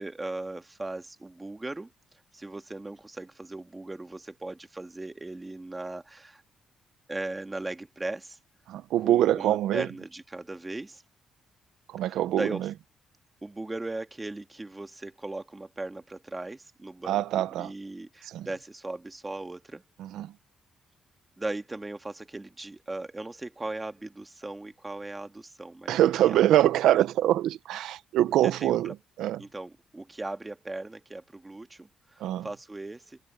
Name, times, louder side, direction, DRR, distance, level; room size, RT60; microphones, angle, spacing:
voice 1, 0.0-1.9 2.3-6.4 7.1-8.4 9.0-11.0 12.0-12.7 13.4-17.2 17.6-19.8 21.4-27.0 28.3-28.8 29.4-33.2, right 2 dB, 15° right, 2.0 m, -38 dB
voice 2, 8.7-9.9 11.9-12.7 17.0-17.7 18.3-18.5 20.0-20.3 25.9-28.9 29.2-29.4 32.2-32.5, right 12 dB, 85° right, 0.6 m, -24 dB
cardioid pair, 90°, 0 cm